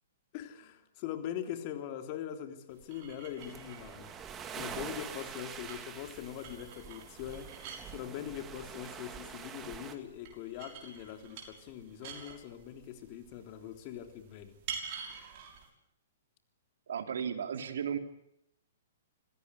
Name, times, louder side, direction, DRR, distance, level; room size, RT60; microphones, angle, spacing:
voice 1, 0.3-4.1 4.5-7.6 7.9-14.6, left 10 dB, 40° left, 6 dB, 3.4 m, -42 dB
sound 1, 2.7-15.7, right 6 dB, 45° right, 6.3 m, -49 dB
sound 2, 3.4-10.0, right 7 dB, 20° right, 2.3 m, -45 dB
voice 2, 16.9-18.0, right 7 dB, 75° right, 7 dB, 3.1 m, -34 dB
26.5 x 16.5 x 9.8 m, 0.78 s
hypercardioid pair, 140°, 0 cm